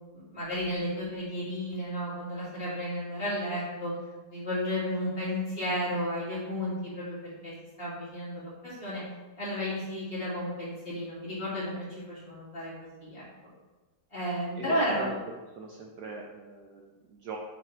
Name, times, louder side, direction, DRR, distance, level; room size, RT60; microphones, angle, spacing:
voice 1, 0.0-3.9 4.3-7.2 7.4-7.5 7.8-9.0 9.4-13.2 14.1-15.0, equal, 30° left, -9 dB, 2.3 m, -33 dB
voice 2, 14.6-15.2 15.6-17.4, right 4 dB, 70° right, 0 dB, 1.1 m, -41 dB
5.9 x 3.6 x 4.3 m, 1.2 s
omnidirectional pair, 2.1 m